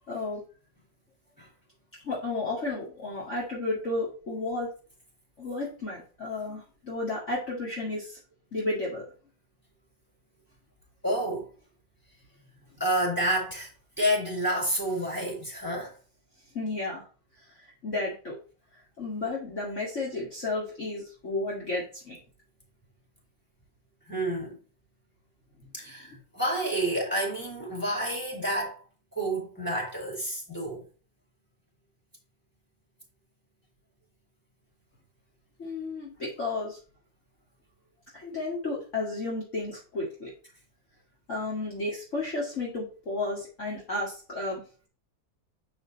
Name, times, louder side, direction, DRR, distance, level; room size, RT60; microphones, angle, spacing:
voice 1, 0.1-0.4 2.0-4.7 5.4-8.2 8.5-9.0 16.5-17.0 17.8-18.4 19.0-22.2 35.6-36.8 38.1-40.3 41.3-44.6, left 2 dB, 40° left, 2.5 m, -32 dB
voice 2, 11.0-11.5 12.8-13.7 14.0-15.9 24.1-24.6 25.7-28.8 29.1-30.8, right 1 dB, 5° left, 4.7 m, -29 dB
7.0 x 6.3 x 4.2 m
omnidirectional pair, 2.0 m